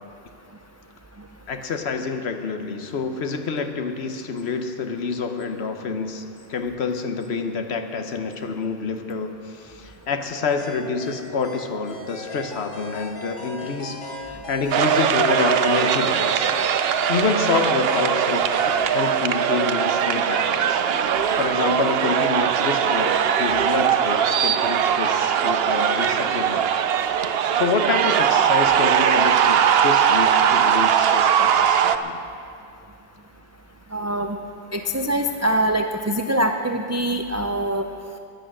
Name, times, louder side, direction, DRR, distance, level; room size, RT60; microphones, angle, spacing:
voice 1, 1.5-6.2 6.5-14.0 14.3-16.5 17.1-20.8 21.4-26.6 27.0-32.2, left 4 dB, 65° left, 6 dB, 1.2 m, -27 dB
sound 1, 10.6-18.9, left 2 dB, 85° left, 2.7 m, -38 dB
sound 2, 14.7-32.0, right 8 dB, 65° right, 0.8 m, -20 dB
voice 2, 33.9-34.4 34.7-37.9, right 1 dB, 25° right, 4 dB, 0.3 m, -23 dB
12.0 x 10.5 x 7.6 m, 2.5 s
omnidirectional pair, 1.2 m